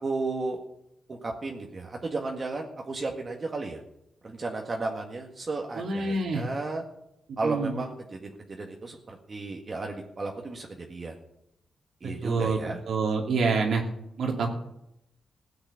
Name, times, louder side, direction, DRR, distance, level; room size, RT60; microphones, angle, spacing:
voice 1, 0.0-0.6 1.1-3.8 4.2-6.8 7.4-11.1 12.0-12.8, right 3 dB, 40° right, 1 dB, 1.8 m, -34 dB
voice 2, 5.8-6.4 7.4-7.8 12.2-12.6 12.9-13.8 14.2-14.5, right 4 dB, 80° right, 0 dB, 2.6 m, -26 dB
16.0 x 8.0 x 7.1 m, 0.80 s
cardioid pair, 90°, 0 cm